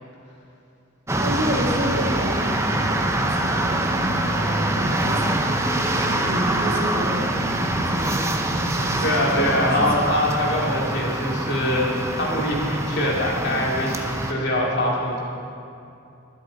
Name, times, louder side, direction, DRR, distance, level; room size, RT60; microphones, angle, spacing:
sound 1, 1.1-14.3, right 1 dB, 15° right, 0.7 m, -24 dB
voice 1, 1.2-9.9, equal, 50° right, 0 dB, 1.6 m, -30 dB
voice 2, 9.0-15.2, left 1 dB, 55° left, -4 dB, 2.5 m, -23 dB
22.5 x 8.1 x 4.0 m, 2.7 s
head